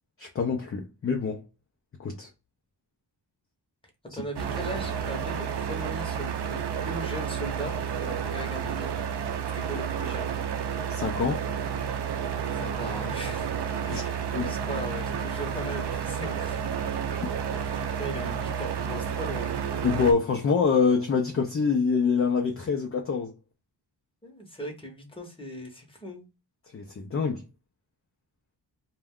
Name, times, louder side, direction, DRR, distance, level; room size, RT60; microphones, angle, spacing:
voice 1, 0.2-1.4 2.0-2.3 10.9-11.4 13.9-14.0 14.3-14.5 19.8-23.3 26.7-27.4, left 5 dB, 35° left, 0.4 m, -25 dB
voice 2, 4.1-7.7 8.0-8.9 9.5-10.3 12.5-13.5 13.8-16.7 17.5-19.6 24.2-26.3, equal, 10° left, 0.8 m, -39 dB
sound 1, 4.4-20.1, right 7 dB, 65° right, 0.5 m, -31 dB
2.2 x 2.2 x 3.5 m
wide cardioid pair, 110°, 44 cm